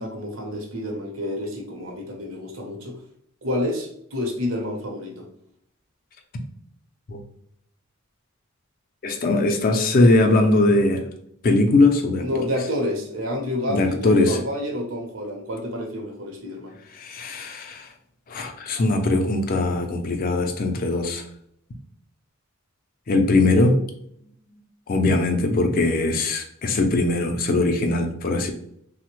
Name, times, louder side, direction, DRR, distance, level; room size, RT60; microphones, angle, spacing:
voice 1, 0.0-3.0 3.4-5.3 12.2-16.7 24.2-24.6, left 1 dB, 75° right, 1 dB, 0.8 m, -29 dB
voice 2, 9.0-11.0 11.4-12.3 13.7-14.4 16.9-17.9 18.3-21.2 23.1-23.8 24.9-28.5, left 2 dB, 40° left, 5 dB, 0.4 m, -20 dB
3.2 x 2.1 x 3.0 m, 0.70 s
head